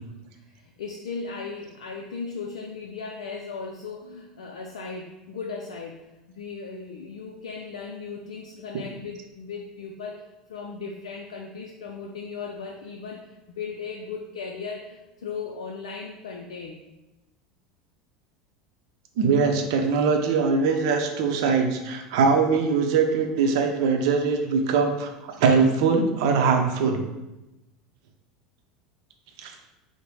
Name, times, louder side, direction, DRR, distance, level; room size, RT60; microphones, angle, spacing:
voice 1, 0.5-16.8, left 5 dB, 80° left, 0 dB, 0.4 m, -37 dB
voice 2, 19.2-27.0 29.4-29.5, right 5 dB, 65° right, 4 dB, 0.6 m, -22 dB
4.9 x 2.1 x 4.6 m, 1.0 s
hypercardioid pair, 80°, 3 cm